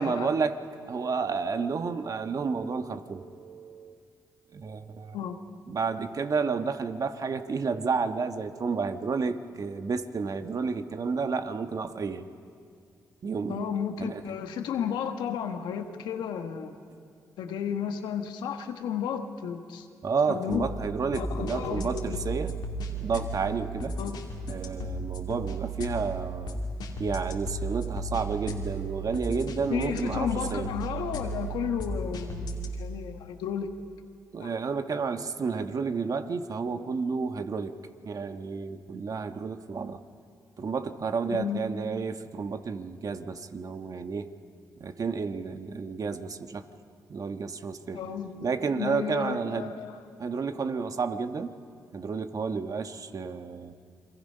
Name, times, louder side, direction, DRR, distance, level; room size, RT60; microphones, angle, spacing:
voice 1, 0.0-4.0 4.5-5.2 5.7-12.3 13.2-13.6 14.0-14.2 20.0-22.5 22.9-24.0 24.5-26.6 27.0-30.7 34.3-37.7 38.0-40.0 40.6-44.3 44.8-46.6 47.1-48.0 48.4-49.7 50.2-51.6 51.9-53.7, right 5 dB, 55° right, 8 dB, 1.3 m, -31 dB
voice 2, 13.5-16.8 17.4-19.9 20.3-20.7 21.2-22.2 24.0-24.3 29.7-33.7 34.4-34.5 41.3-41.6 47.9-50.0, left 8 dB, 90° left, 6 dB, 1.3 m, -33 dB
sound 1, 20.5-32.7, right 2 dB, 75° left, 2.6 m, -35 dB
29.5 x 22.5 x 5.5 m, 2.3 s
cardioid pair, 60°, 7 cm